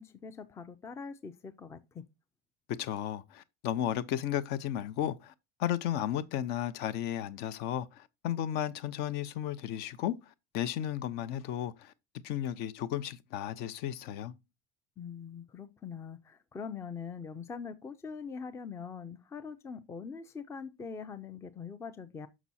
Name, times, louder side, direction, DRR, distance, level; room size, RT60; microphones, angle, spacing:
voice 1, 0.0-2.0 15.0-22.3, left 6 dB, 15° left, 0.5 m, -43 dB
voice 2, 2.7-5.3 5.6-10.2 10.5-11.9 12.2-14.3, left 11 dB, 55° left, 0.7 m, -34 dB
6.1 x 6.0 x 4.1 m
cardioid pair, 165°, 19 cm